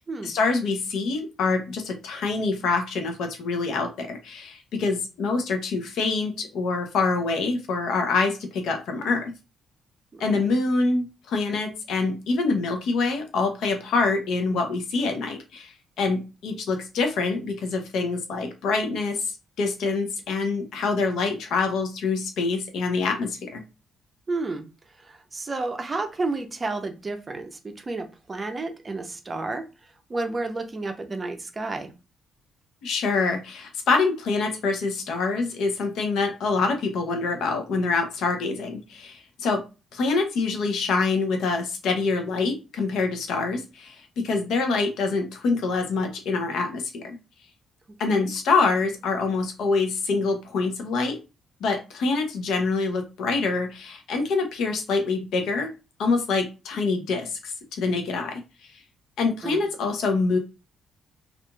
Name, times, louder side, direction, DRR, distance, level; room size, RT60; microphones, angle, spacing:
voice 1, 0.2-9.3 10.2-23.6 32.8-39.6 39.9-47.2 48.0-51.2 51.6-55.7 56.0-58.4 59.2-60.4, left 4 dB, 75° left, 5 dB, 0.6 m, -25 dB
voice 2, 10.1-10.5 24.3-24.6 25.0-29.6 30.1-31.9 48.1-48.3 59.4-59.6, right 3 dB, 30° right, 5 dB, 0.5 m, -31 dB
2.8 x 2.4 x 2.3 m, 0.30 s
cardioid pair, 90°, 0 cm